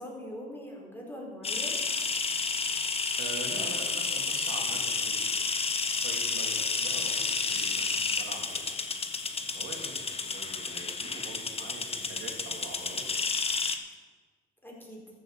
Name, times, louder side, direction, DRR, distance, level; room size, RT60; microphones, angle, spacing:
voice 1, 0.0-1.8 14.6-15.0, equal, 10° left, -3 dB, 4.8 m, -42 dB
sound 1, 1.4-13.8, left 4 dB, 30° left, 1.1 m, -31 dB
voice 2, 3.2-5.2 6.0-6.5 6.7-8.7 9.4-13.0, right 3 dB, 90° right, 0 dB, 3.0 m, -44 dB
13.5 x 7.8 x 6.6 m, 1.4 s
cardioid pair, 90°, 20 cm